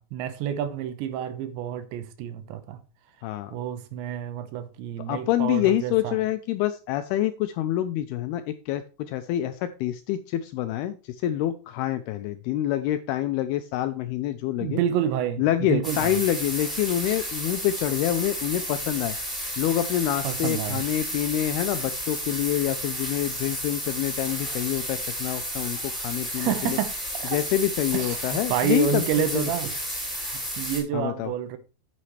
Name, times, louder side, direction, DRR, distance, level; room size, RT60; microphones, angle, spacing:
voice 1, 0.0-2.8 3.5-6.2 14.6-16.2 20.2-20.8 26.4-27.4 27.9-29.7 30.1-31.6, right 9 dB, 85° right, 3.3 m, -29 dB
voice 2, 3.2-3.5 5.1-14.8 15.4-19.2 19.6-26.8 27.3-29.5 30.9-31.3, left 12 dB, 85° left, 2.3 m, -26 dB
sound 1, 15.8-30.8, equal, ahead, 5.2 m, -32 dB
9.9 x 8.4 x 3.2 m
omnidirectional pair, 5.0 m